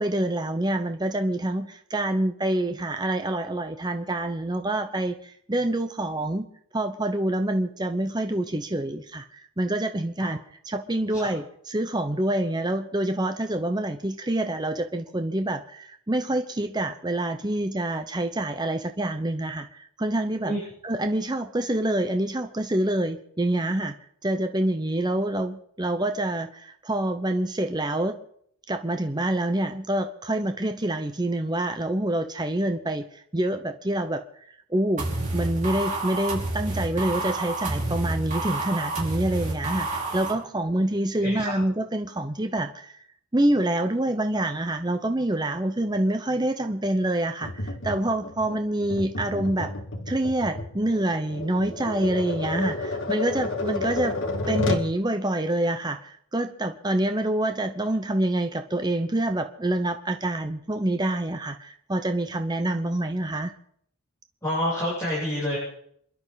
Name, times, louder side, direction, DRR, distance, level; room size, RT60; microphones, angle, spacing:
voice 1, 0.0-6.5 6.7-10.4 10.7-20.5 20.8-23.9 24.2-28.2 28.7-33.0 33.3-34.2 34.7-35.1 35.3-42.9 43.3-49.7 50.1-54.2 54.5-63.5, right 1 dB, 20° right, 7 dB, 0.8 m, -26 dB
sound 1, 35.0-40.3, right 2 dB, 35° right, 4.8 m, -29 dB
voice 2, 41.2-41.6 64.4-65.6, equal, 10° left, -8 dB, 7.9 m, -28 dB
Tap, 47.4-54.9, left 2 dB, 55° left, 2.1 m, -31 dB
28.0 x 11.5 x 4.1 m, 0.65 s
head